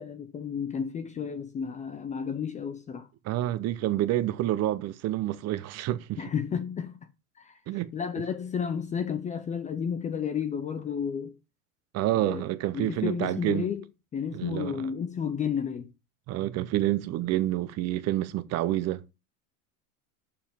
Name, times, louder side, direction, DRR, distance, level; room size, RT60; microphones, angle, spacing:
voice 1, 0.0-3.1 6.2-7.0 7.4-7.6 7.9-11.4 12.1-12.4 12.7-13.8 14.1-15.9, left 7 dB, 15° left, 0.5 m, -32 dB
voice 2, 3.2-6.2 7.7-7.9 11.9-13.7 14.3-14.9 16.3-19.0, right 14 dB, 35° right, 0.8 m, -28 dB
6.9 x 5.7 x 6.8 m
supercardioid pair, 140°, 45 cm